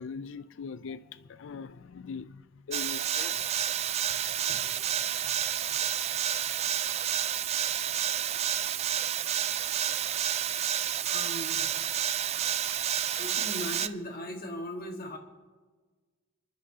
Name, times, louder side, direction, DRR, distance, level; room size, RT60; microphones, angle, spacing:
voice 1, 0.0-3.6 4.6-4.9, left 5 dB, 60° left, 0.4 m, -42 dB
sound 1, 2.7-13.9, right 10 dB, 30° right, 0.3 m, -30 dB
voice 2, 11.0-11.7 12.0-12.1 13.2-15.2, left 1 dB, 45° left, 1.7 m, -38 dB
26.5 x 11.0 x 2.8 m
head